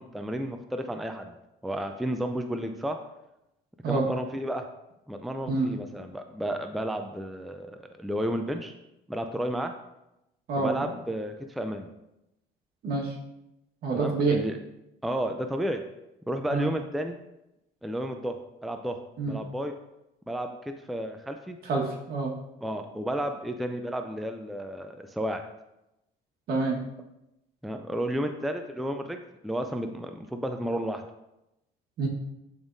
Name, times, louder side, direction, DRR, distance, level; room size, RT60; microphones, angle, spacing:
voice 1, 0.0-1.3 1.6-3.0 3.9-4.6 5.1-8.7 9.1-9.7 10.6-11.9 13.9-14.6 15.0-15.8 16.3-17.2 17.8-18.4 18.6-19.0 19.3-19.7 20.3-20.5 20.9-21.6 22.6-25.4 27.6-31.0, equal, ahead, 5 dB, 0.4 m, -32 dB
voice 2, 12.8-13.1 13.8-14.4 16.5-16.7 19.2-19.4 21.7-22.3 26.5-26.8 32.0-32.1, right 3 dB, 65° right, -1 dB, 1.6 m, -27 dB
10.5 x 3.6 x 2.7 m, 0.89 s
cardioid pair, 110°, 17 cm